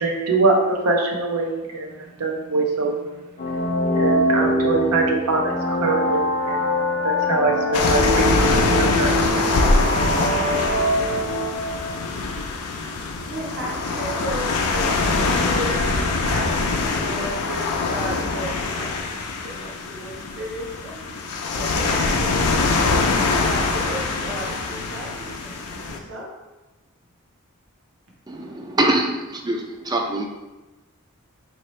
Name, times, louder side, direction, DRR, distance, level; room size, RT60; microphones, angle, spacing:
voice 1, 0.0-3.2 3.9-6.7 7.0-9.7, right 3 dB, 90° right, 0 dB, 0.6 m, -23 dB
sound 1, 3.4-12.0, equal, 40° left, 0.5 m, -23 dB
sound 2, 7.7-26.0, left 3 dB, 85° left, 0.5 m, -23 dB
voice 2, 13.2-21.1 21.5-22.8 23.4-26.3, right 1 dB, 60° right, -3 dB, 0.9 m, -34 dB
voice 3, 28.3-30.3, right 1 dB, 20° right, 2 dB, 0.4 m, -24 dB
4.2 x 2.8 x 3.1 m, 1.1 s
head